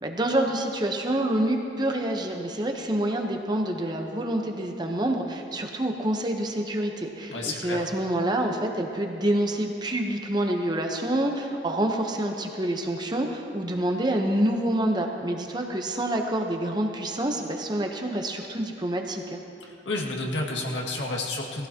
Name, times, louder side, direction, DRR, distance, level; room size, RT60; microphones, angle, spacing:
voice 1, 0.0-19.4, right 1 dB, 25° right, 2 dB, 0.9 m, -27 dB
voice 2, 7.3-7.8 19.9-21.7, left 2 dB, 85° left, -1 dB, 2.1 m, -30 dB
19.5 x 15.5 x 2.9 m, 2.7 s
head